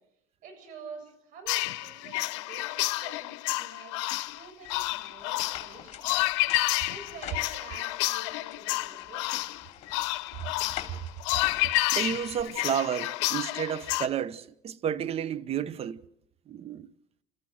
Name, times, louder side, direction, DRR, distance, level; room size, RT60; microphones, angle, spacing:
voice 1, 0.4-6.2 6.9-9.5, right 4 dB, 60° right, 7.4 m, -48 dB
sound 1, 1.5-14.1, left 19 dB, 80° left, 0.8 m, -30 dB
sound 2, 4.6-8.0 8.5-12.4, left 10 dB, 45° left, 3.0 m, -46 dB
voice 2, 11.9-16.0 16.5-16.9, right 8 dB, 40° right, 1.0 m, -31 dB
29.0 x 14.0 x 7.9 m
supercardioid pair, 100°, 15 cm